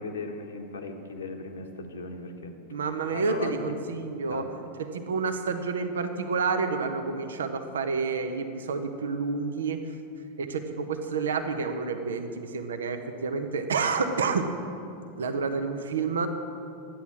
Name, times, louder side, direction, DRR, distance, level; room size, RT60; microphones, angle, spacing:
voice 1, 0.0-2.6 3.1-3.8 4.3-4.5, left 3 dB, 65° left, 4 dB, 1.5 m, -37 dB
voice 2, 2.7-4.4 4.8-9.8 10.4-14.5 15.2-16.3, right 4 dB, 65° right, 7 dB, 1.0 m, -29 dB
13.0 x 9.5 x 7.4 m, 2.6 s
figure-of-eight pair, 90°, 0 cm